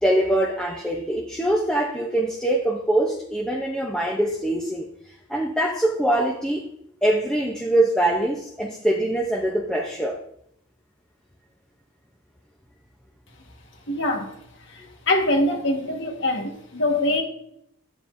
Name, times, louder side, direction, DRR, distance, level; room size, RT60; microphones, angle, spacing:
voice 1, 0.0-4.8 5.3-6.7 7.0-10.2, right 1 dB, 5° left, 0.6 m, -23 dB
voice 2, 13.9-14.3 14.7-17.2, left 1 dB, 55° left, 1.4 m, -23 dB
9.6 x 8.6 x 2.6 m
head